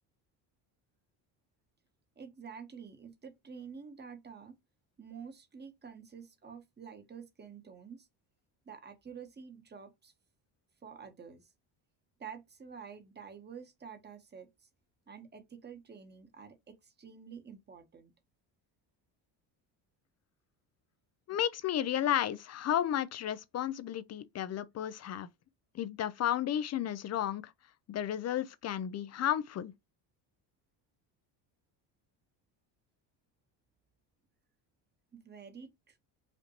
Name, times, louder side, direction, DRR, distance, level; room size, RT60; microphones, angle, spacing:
voice 1, 2.2-4.5 5.0-8.1 8.7-10.1 10.8-11.5 12.2-14.5 15.1-18.1 35.1-36.0, right 6 dB, 20° right, 1.0 m, -49 dB
voice 2, 21.3-25.3 25.7-27.5 27.9-29.7, left 11 dB, 35° left, 0.4 m, -33 dB
5.2 x 2.5 x 2.9 m
cardioid pair, 110°, 47 cm